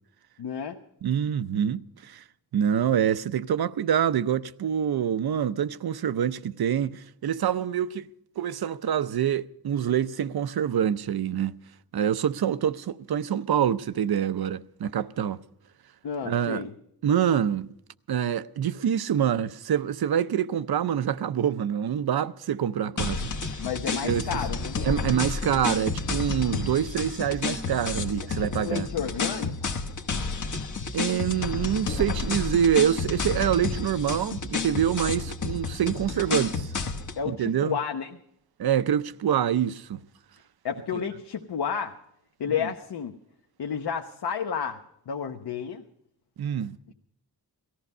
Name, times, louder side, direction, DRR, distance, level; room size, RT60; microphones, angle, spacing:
voice 1, 0.4-0.8 16.0-16.7 23.6-24.8 28.4-29.5 37.2-38.1 40.6-42.0 42.4-43.1 43.6-44.8 45.1-45.8, left 7 dB, 85° left, 1.0 m, -31 dB
voice 2, 1.0-2.2 2.5-8.1 8.4-11.6 11.9-15.4 16.2-16.6 17.0-17.7 18.1-23.6 23.9-24.2 24.8-28.9 30.9-36.7 37.3-37.8 38.6-40.0 40.9-41.0 42.6-42.7 46.4-46.8, right 9 dB, 70° right, 0.6 m, -26 dB
sound 1, 23.0-37.2, left 4 dB, 50° left, 1.1 m, -31 dB
18.5 x 14.5 x 5.4 m
wide cardioid pair, 180°, 39 cm